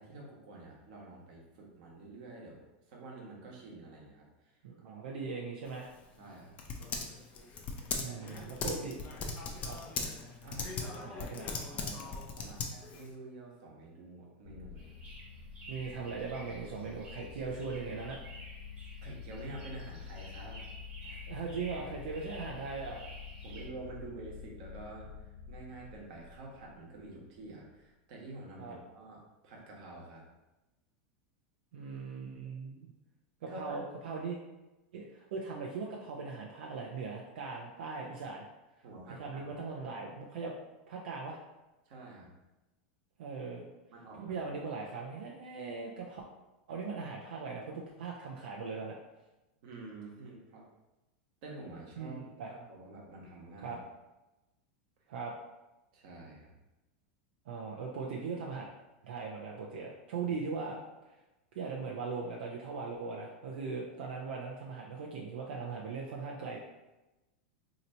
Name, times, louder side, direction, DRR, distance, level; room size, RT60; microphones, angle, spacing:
voice 1, 0.0-5.0 5.3-5.4 6.2-6.6 8.1-8.8 10.4-15.0 19.0-20.6 21.0-21.4 23.4-30.2 33.5-33.8 35.0-35.1 38.8-39.5 41.9-42.3 43.9-44.4 49.6-50.7 51.4-52.2 52.5-53.8 55.9-56.5 60.2-60.3, right 2 dB, 55° right, -2 dB, 1.1 m, -49 dB
voice 2, 4.6-5.9 8.0-9.0 9.6-9.8 11.0-11.5 15.7-18.2 21.3-23.0 28.6-28.8 31.7-32.9 33.4-34.4 34.9-38.4 39.2-40.5 40.9-41.4 43.2-43.7 44.2-46.2 46.7-49.0 52.0-52.5 53.6-53.8 55.1-55.3 57.5-58.7 59.0-60.8 61.5-66.6, right 4 dB, 80° right, -2 dB, 0.6 m, -39 dB
Typing, 5.7-13.1, left 4 dB, 25° left, 0.5 m, -39 dB
sound 1, 14.4-27.3, left 7 dB, 70° left, 1.3 m, -48 dB
sound 2, 14.7-23.7, right 2 dB, 25° right, 1.1 m, -52 dB
2.9 x 2.6 x 4.3 m, 1.0 s
supercardioid pair, 155°, 5 cm